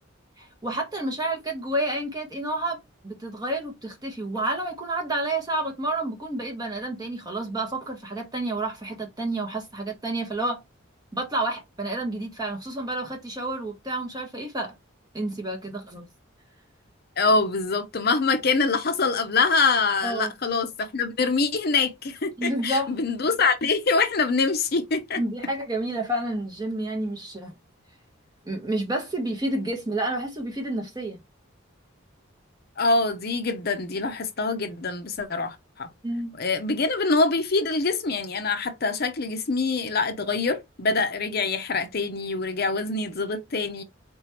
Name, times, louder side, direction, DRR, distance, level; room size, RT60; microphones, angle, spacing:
voice 1, 0.4-10.6 11.1-14.7 15.1-16.1 20.0-20.3 22.4-22.9 25.2-27.5 28.4-31.2 36.0-36.4, right 1 dB, 20° right, 1.2 m, -29 dB
voice 2, 17.2-25.2 32.8-35.9 36.4-43.8, left 4 dB, 50° left, 0.7 m, -25 dB
4.1 x 3.5 x 3.0 m
head